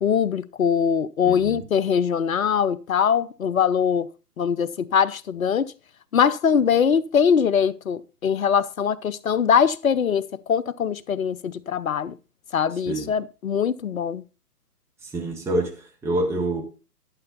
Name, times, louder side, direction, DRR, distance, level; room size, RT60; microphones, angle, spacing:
voice 1, 0.0-4.1 4.4-5.7 6.1-12.1 12.5-14.2, left 7 dB, 60° left, 0.8 m, -22 dB
voice 2, 1.2-1.7 12.8-13.1 15.0-16.6, right 1 dB, 5° right, 1.7 m, -27 dB
11.5 x 7.9 x 4.1 m
figure-of-eight pair, 135°, 48 cm